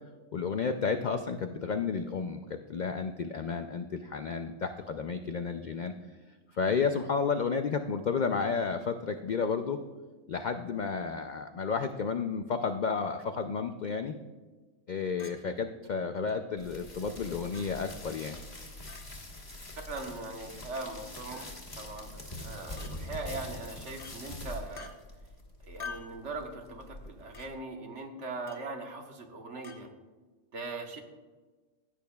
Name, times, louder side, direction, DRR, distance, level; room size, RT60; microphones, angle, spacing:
voice 1, 0.3-5.9 6.5-9.8 10.3-14.1 14.9-18.4, left 5 dB, 75° left, 7 dB, 0.4 m, -32 dB
Chink clink, 15.2-15.4 16.3-16.4 17.5-17.7 18.9-19.0 20.0-20.1 21.3-21.5 22.8-22.9 24.0-24.2 24.8-24.9 25.8-26.2 27.3-27.5 28.5-28.7 29.6-29.8, left 5 dB, 45° left, 1.1 m, -45 dB
sound 1, 16.6-27.5, left 1 dB, 30° left, 1.5 m, -44 dB
voice 2, 19.9-24.9 25.6-29.9 30.5-31.0, right 3 dB, 60° right, 3 dB, 1.4 m, -40 dB
15.5 x 8.7 x 2.3 m, 1.3 s
omnidirectional pair, 1.4 m